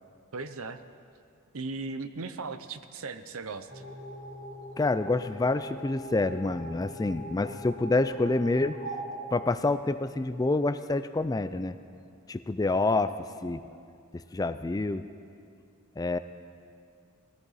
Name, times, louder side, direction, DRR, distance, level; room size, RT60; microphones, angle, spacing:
voice 1, 0.3-0.8 1.5-3.8, right 3 dB, 75° right, 11 dB, 0.8 m, -37 dB
sound 1, 3.7-10.2, right 1 dB, 45° right, 4.5 m, -42 dB
voice 2, 4.8-8.8 9.3-11.8 12.3-13.1 13.4-13.6 14.1-15.1 16.0-16.2, left 2 dB, 15° left, 12 dB, 0.3 m, -27 dB
21.0 x 16.0 x 4.1 m, 2.4 s
head